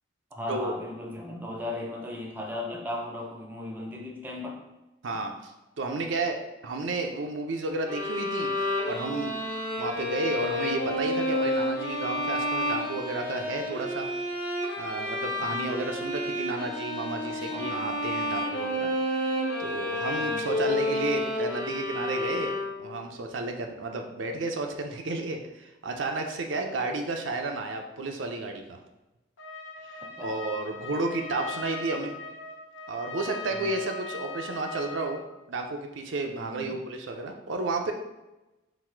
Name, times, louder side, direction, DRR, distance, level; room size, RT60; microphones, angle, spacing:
voice 1, 0.3-4.6 15.4-15.7 17.3-17.7 20.2-20.5 30.2-30.4 33.5-33.7 36.5-36.8, left 1 dB, 10° right, 0 dB, 0.5 m, -37 dB
voice 2, 5.0-5.5 5.8-8.5 8.9-9.3 9.8-14.1 14.8-18.9 19.6-22.5 22.8-28.8 29.8-29.9 30.2-32.2 32.9-35.2 35.5-37.9, right 3 dB, 85° right, 3 dB, 0.5 m, -32 dB
sound 1, 7.9-23.0, left 1 dB, 55° left, 1.0 m, -30 dB
Trumpet, 29.4-35.3, left 3 dB, 90° left, 0.8 m, -40 dB
4.0 x 2.5 x 4.4 m, 1.0 s
head